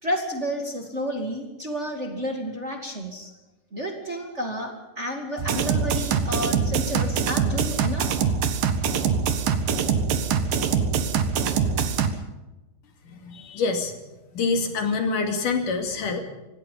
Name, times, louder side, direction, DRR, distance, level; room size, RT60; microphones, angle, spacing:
voice 1, 0.0-3.3 3.7-8.2, equal, 25° right, 3 dB, 2.3 m, -31 dB
sound 1, 5.4-12.1, right 6 dB, 90° right, 3.2 m, -24 dB
voice 2, 13.1-13.9 14.3-16.2, left 4 dB, 75° left, 5 dB, 4.1 m, -26 dB
25.5 x 18.5 x 5.6 m, 1.1 s
omnidirectional pair, 3.8 m